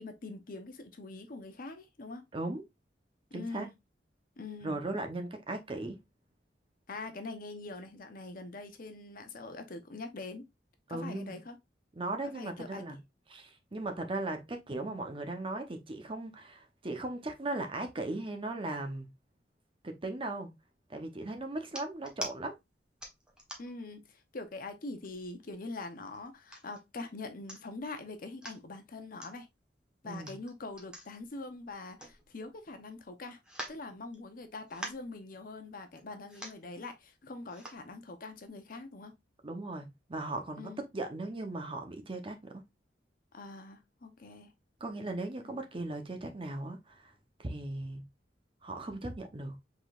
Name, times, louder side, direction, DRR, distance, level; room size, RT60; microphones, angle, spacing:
voice 1, 0.0-2.2 3.3-3.7 4.4-4.8 6.9-10.5 10.9-11.6 12.3-12.8 23.6-29.5 30.0-33.4 33.7-39.1 40.6-40.8 43.3-44.5, left 3 dB, 55° left, 0.8 m, -43 dB
voice 2, 3.3-3.7 4.6-6.0 10.9-11.4 12.0-13.0 13.3-19.1 19.8-20.5 20.9-22.6 30.0-30.3 39.4-42.6 44.8-47.1 47.4-48.0 48.6-49.6, right 2 dB, 30° right, 0.8 m, -38 dB
sound 1, 21.6-22.3 23.0-23.8 24.4-24.5 24.9-25.5 26.1-26.8 27.2-27.3 27.5-27.9 28.2-28.6 29.2-29.3 30.1-32.6 32.9-33.0 33.4-34.4 34.7-35.1 35.9-36.0 36.3-36.7 37.5-37.8 38.4-38.5, right 1 dB, 5° right, 1.2 m, -45 dB
5.0 x 3.9 x 2.4 m
head